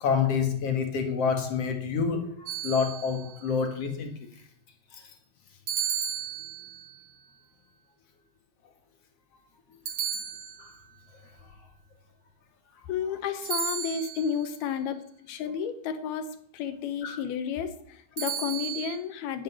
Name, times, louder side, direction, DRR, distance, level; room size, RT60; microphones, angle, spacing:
voice 1, 0.0-4.1 17.0-17.2, left 6 dB, 50° left, 5 dB, 2.1 m, -27 dB
sound 1, 2.5-3.4 5.7-6.9 9.9-10.9 13.4-14.4 18.2-19.0, right 9 dB, 50° right, 3.9 m, -33 dB
voice 2, 12.9-15.0 15.3-16.3 16.5-19.4, left 7 dB, 75° left, 9 dB, 2.8 m, -32 dB
12.0 x 8.2 x 9.5 m, 0.66 s
omnidirectional pair, 4.8 m